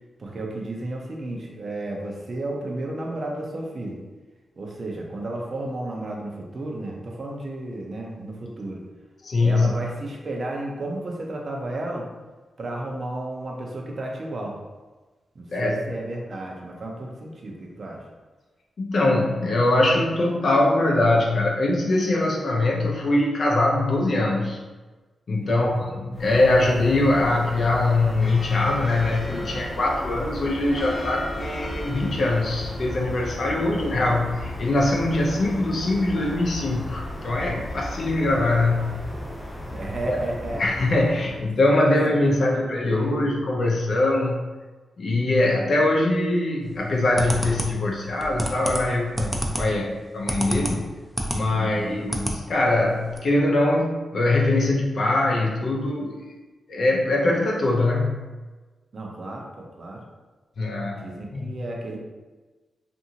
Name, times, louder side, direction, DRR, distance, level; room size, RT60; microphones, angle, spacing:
voice 1, 0.2-4.0 4.6-8.8 9.4-12.1 12.6-14.6 15.3-18.0 25.4-25.9 33.5-34.1 39.7-40.8 41.8-43.3 51.5-52.1 58.9-60.0 61.0-62.0, right 2 dB, 55° right, -1 dB, 0.6 m, -33 dB
voice 2, 9.2-9.7 15.5-15.8 18.8-24.6 25.3-38.9 40.1-40.2 40.6-44.4 45.0-50.8 51.3-56.2 56.7-58.1 60.6-61.0 61.4-61.5, left 2 dB, 60° left, -2 dB, 0.5 m, -22 dB
sound 1, 26.1-41.6, left 1 dB, 20° left, 0.9 m, -35 dB
sound 2, 46.8-51.4 51.8-52.4 52.7-52.8 53.1-53.2, equal, 10° right, 0.5 m, -28 dB
2.6 x 2.5 x 2.8 m, 1.3 s
cardioid pair, 70°, 0 cm